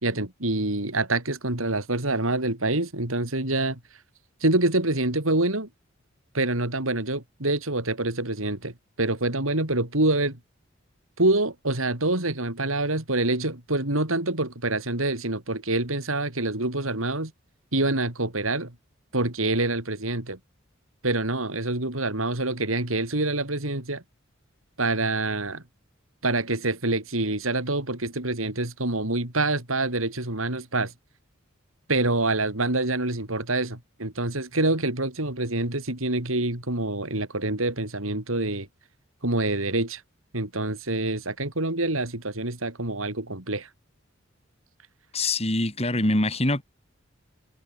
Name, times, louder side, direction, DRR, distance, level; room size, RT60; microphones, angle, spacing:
voice 1, 0.0-3.8 4.4-5.7 6.3-10.4 11.2-17.3 17.7-18.7 19.1-20.4 21.0-24.0 24.8-25.6 26.2-30.9 31.9-38.7 39.2-40.0 40.3-43.7, right 2 dB, 85° right, 4.6 m, -26 dB
voice 2, 45.1-46.6, left 2 dB, 30° left, 4.3 m, -24 dB
head